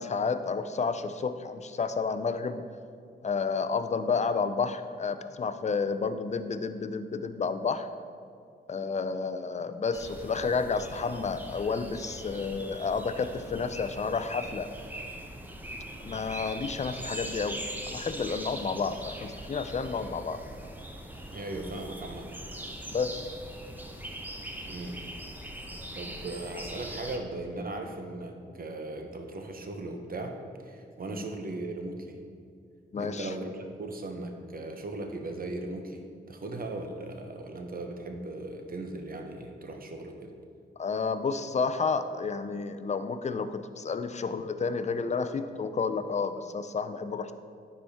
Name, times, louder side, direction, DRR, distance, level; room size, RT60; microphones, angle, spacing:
voice 1, 0.0-2.6 3.2-7.9 8.7-14.7 16.0-17.6 17.9-20.4 22.9-23.1 31.1-31.2 32.9-33.3 40.8-47.3, left 5 dB, 40° left, 11 dB, 0.5 m, -31 dB
sound 1, 9.9-27.2, right 1 dB, 10° right, 0.8 m, -41 dB
voice 2, 21.3-22.3 24.6-25.0 25.9-30.3 30.6-32.2 33.0-40.3, right 2 dB, 50° right, 4 dB, 0.9 m, -38 dB
9.7 x 4.4 x 3.5 m, 2.3 s
cardioid pair, 60°, 19 cm